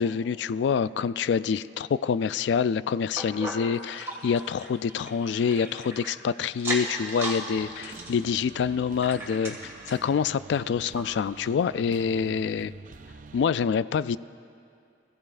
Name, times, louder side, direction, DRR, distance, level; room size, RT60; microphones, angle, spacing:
voice 1, 0.0-12.7 13.3-14.2, left 6 dB, 80° left, 16 dB, 0.3 m, -26 dB
sound 1, 3.2-6.1 6.5-7.4 7.7-10.1 10.6-10.7 10.9-11.0 11.7-11.8, right 1 dB, 15° right, 1.9 m, -37 dB
sound 2, 7.5-13.5, right 4 dB, 45° right, 0.4 m, -47 dB
25.0 x 15.0 x 2.5 m, 2.4 s
head